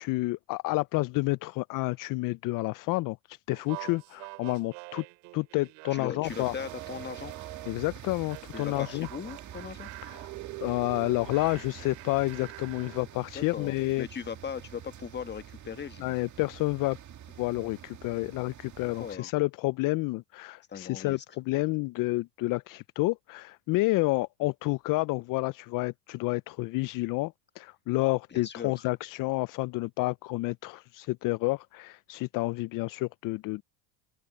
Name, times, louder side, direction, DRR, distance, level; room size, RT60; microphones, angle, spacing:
voice 1, 0.0-5.0 5.3-6.5 7.7-9.1 10.1-10.2 10.6-14.1 16.0-17.0 17.4-33.6, left 21 dB, 45° left, 0.5 m, -30 dB
sound 1, 3.5-7.9 8.3-13.1, right 32 dB, 75° right, 4.9 m, -45 dB
voice 2, 5.9-7.3 8.5-9.9 13.3-16.2 19.0-19.3 20.7-21.2 28.3-28.9, left 7 dB, 25° left, 1.4 m, -39 dB
sound 2, 6.2-19.2, right 10 dB, 40° right, 2.0 m, -47 dB
open air
supercardioid pair, 110°, 45 cm